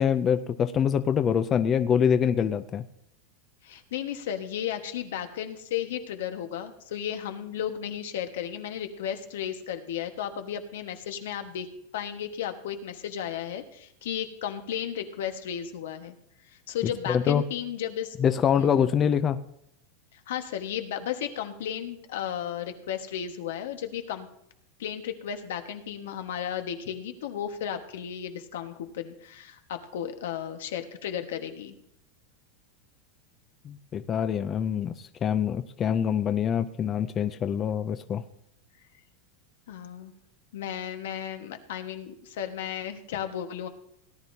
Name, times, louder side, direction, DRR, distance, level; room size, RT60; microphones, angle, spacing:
voice 1, 0.0-2.8 17.1-17.4 18.2-19.4 33.6-38.2, left 8 dB, 20° left, 11 dB, 0.4 m, -25 dB
voice 2, 3.6-11.7 11.9-16.1 16.7-18.2 18.6-18.7 20.1-24.3 24.8-31.8 39.7-40.1 40.5-43.7, left 9 dB, 80° left, 7 dB, 1.4 m, -34 dB
18.0 x 10.5 x 2.8 m, 0.77 s
supercardioid pair, 165°, 0 cm